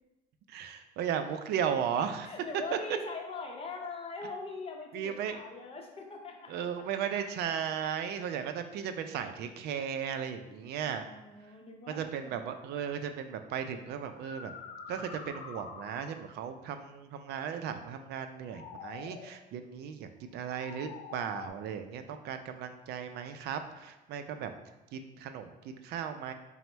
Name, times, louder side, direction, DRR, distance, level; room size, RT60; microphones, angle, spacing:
voice 1, 0.5-2.3 4.9-5.4 6.5-11.1 11.9-14.5 14.9-24.5 24.9-26.3, right 8 dB, 75° right, 8 dB, 0.4 m, -36 dB
voice 2, 2.3-6.6 7.2-7.3 10.5-12.4, left 3 dB, 35° left, 2 dB, 0.7 m, -42 dB
sound 1, 13.0-13.2 14.0-16.3 18.2-19.4 20.3-21.5, left 6 dB, 90° left, 0.4 m, -46 dB
4.0 x 2.0 x 4.4 m, 1.0 s
cardioid pair, 110°, 17 cm